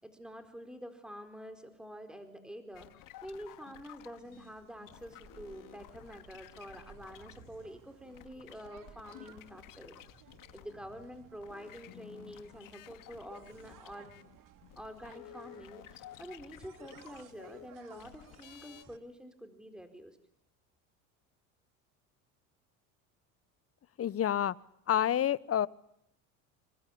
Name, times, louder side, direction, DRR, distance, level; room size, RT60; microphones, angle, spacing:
voice 1, 0.0-9.9 10.5-14.1 14.8-20.2, equal, ahead, 7 dB, 4.5 m, -47 dB
sound 1, 2.7-11.1 11.3-18.8, left 15 dB, 55° left, 1.4 m, -54 dB
sound 2, 3.9-19.0, right 9 dB, 55° right, 2.7 m, -59 dB
voice 2, 24.0-24.5 24.9-25.7, left 10 dB, 35° left, 20 dB, 1.1 m, -28 dB
28.5 x 22.5 x 8.7 m, 0.73 s
hypercardioid pair, 80°, 39 cm